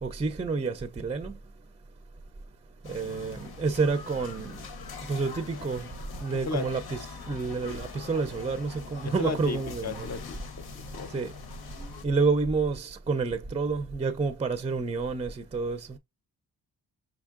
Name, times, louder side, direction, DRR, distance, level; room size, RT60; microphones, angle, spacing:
voice 1, 0.0-1.4 2.8-4.7 5.1-5.9 6.2-10.1 11.1-11.3 12.0-16.0, right 4 dB, 20° right, 0.4 m, -29 dB
sound 1, 2.8-12.0, left 5 dB, 90° left, 1.0 m, -43 dB
voice 2, 9.0-11.1, left 4 dB, 45° left, 0.6 m, -35 dB
5.1 x 3.5 x 2.3 m
wide cardioid pair, 120°, 36 cm